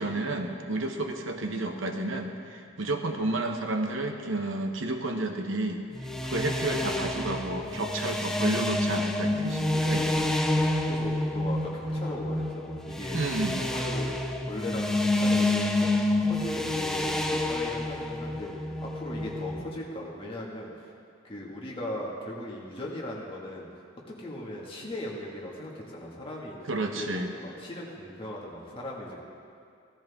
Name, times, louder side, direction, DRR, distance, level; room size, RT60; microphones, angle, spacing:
voice 1, 0.0-5.8 6.2-10.3 13.1-13.6 26.7-27.3, right 2 dB, 75° right, 4 dB, 1.1 m, -31 dB
sound 1, 5.9-19.6, left 1 dB, 5° left, 0.6 m, -28 dB
voice 2, 10.5-13.2 13.6-14.1 14.4-15.9 16.2-20.9 21.2-23.7 24.1-26.6 26.9-29.2, left 1 dB, 25° left, -4 dB, 2.0 m, -38 dB
16.5 x 13.5 x 3.7 m, 2.4 s
head